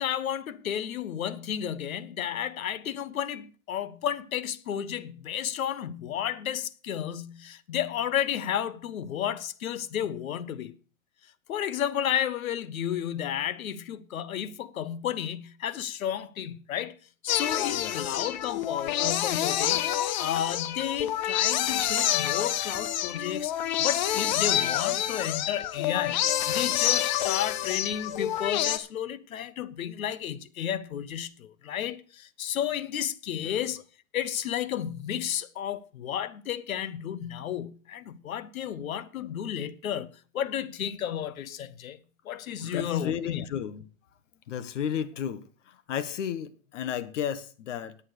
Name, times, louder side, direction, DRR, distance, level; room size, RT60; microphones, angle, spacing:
voice 1, 0.0-10.7 11.5-16.9 17.2-19.9 20.2-23.5 23.8-33.8 34.1-40.1 40.3-42.0 42.2-43.4, left 10 dB, 85° left, 1.2 m, -32 dB
sound 1, 17.3-28.8, left 12 dB, 35° left, 0.7 m, -28 dB
voice 2, 17.7-18.0 33.4-33.6 42.7-43.9 44.5-48.0, left 9 dB, 60° left, 1.4 m, -33 dB
9.8 x 8.7 x 6.6 m
hypercardioid pair, 160°, 40 cm